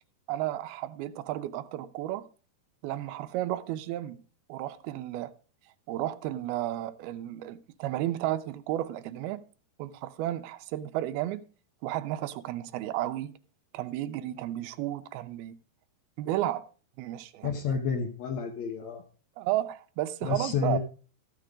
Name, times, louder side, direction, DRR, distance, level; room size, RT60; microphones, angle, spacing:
voice 1, 0.3-2.3 2.8-4.2 4.5-5.3 5.9-9.4 9.8-11.4 11.8-13.4 13.7-15.5 16.2-16.7 17.0-17.8 19.4-20.8, right 14 dB, 75° right, 2.5 m, -33 dB
voice 2, 17.4-19.0 20.2-20.8, left 6 dB, 65° left, 1.7 m, -30 dB
14.0 x 6.7 x 5.0 m
omnidirectional pair, 4.8 m